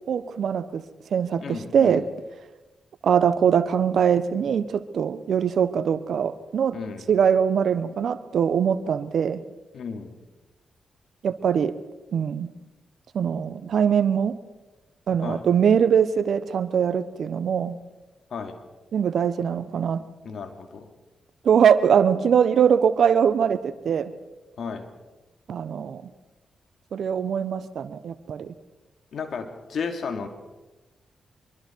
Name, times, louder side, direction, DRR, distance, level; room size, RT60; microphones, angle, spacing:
voice 1, 0.1-0.8 1.1-2.0 3.0-6.8 7.1-9.4 11.2-11.7 12.1-12.5 13.1-14.3 15.1-17.8 18.9-20.0 21.4-24.1 25.5-26.1 26.9-28.5, right 7 dB, 70° right, 14 dB, 1.2 m, -22 dB
voice 2, 1.4-2.0 6.7-7.1 9.7-10.2 15.2-15.4 18.3-18.6 20.2-20.9 24.6-24.8 29.1-30.3, left 5 dB, 70° left, 5 dB, 2.8 m, -33 dB
25.0 x 23.0 x 4.7 m, 1.1 s
hypercardioid pair, 40°, 0 cm